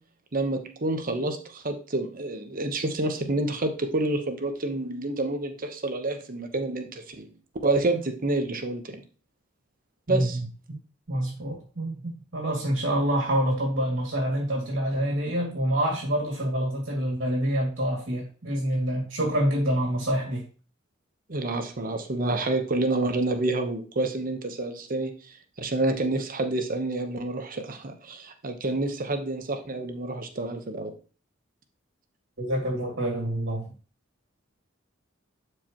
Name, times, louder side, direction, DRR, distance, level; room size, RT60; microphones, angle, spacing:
voice 1, 0.3-7.3 7.6-9.0 10.1-10.4 21.3-30.9, right 2 dB, 45° right, 6 dB, 1.1 m, -28 dB
voice 2, 10.1-10.8 11.1-20.4 32.4-33.6, right 1 dB, 65° right, -2 dB, 2.5 m, -27 dB
11.5 x 4.9 x 3.0 m, 0.38 s
head